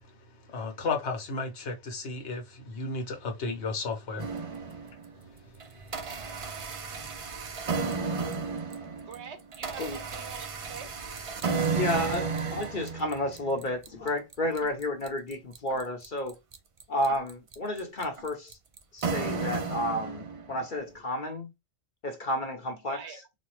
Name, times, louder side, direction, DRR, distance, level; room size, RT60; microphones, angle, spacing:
voice 1, 0.5-4.3, left 3 dB, 85° left, 1.3 m, -33 dB
sound 1, 4.2-5.1 5.6-20.6, right 4 dB, 45° right, 0.4 m, -33 dB
voice 2, 9.0-10.9 22.9-23.2, right 6 dB, 85° right, 1.1 m, -44 dB
voice 3, 11.7-16.4 16.9-18.6 18.9-21.5 22.0-23.2, left 1 dB, 50° left, 0.9 m, -31 dB
4.1 x 2.3 x 3.0 m
omnidirectional pair, 1.1 m